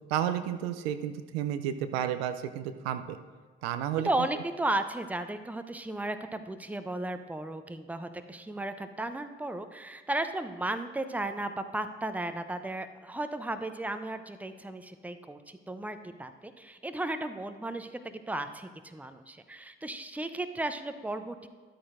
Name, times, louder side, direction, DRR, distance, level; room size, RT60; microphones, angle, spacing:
voice 1, 0.1-3.2 3.6-4.1, right 10 dB, 80° right, 10 dB, 0.5 m, -31 dB
voice 2, 4.0-21.5, right 2 dB, 5° right, 9 dB, 0.6 m, -35 dB
12.0 x 8.6 x 2.6 m, 1.5 s
hypercardioid pair, 40°, 31 cm